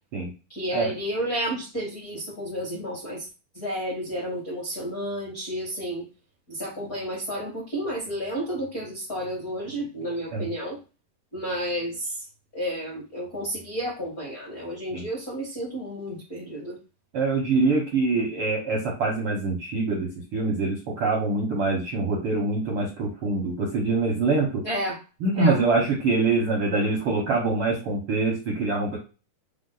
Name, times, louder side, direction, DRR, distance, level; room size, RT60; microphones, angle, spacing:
voice 1, 0.5-3.2 3.5-6.1 6.5-10.8 11.3-12.1 12.5-16.8 24.6-25.0 25.4-25.6, equal, 45° left, -6 dB, 1.1 m, -31 dB
voice 2, 17.1-24.6 25.2-29.0, right 3 dB, 70° right, -2 dB, 1.2 m, -24 dB
6.1 x 2.1 x 3.8 m, 0.31 s
omnidirectional pair, 4.0 m